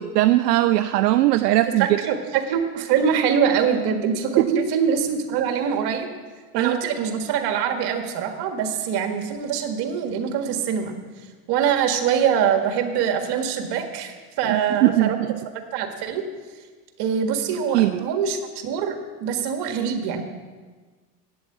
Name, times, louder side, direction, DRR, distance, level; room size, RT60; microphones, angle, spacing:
voice 1, 0.0-1.9 4.4-4.6 6.5-6.8 14.5-15.4 17.7-18.0, right 15 dB, 80° right, 10 dB, 0.6 m, -20 dB
voice 2, 1.8-6.1 6.5-11.0 11.5-15.2 15.7-16.3 17.0-20.2, right 7 dB, 55° right, 6 dB, 1.8 m, -24 dB
9.0 x 7.8 x 8.1 m, 1.4 s
hypercardioid pair, 95°, 47 cm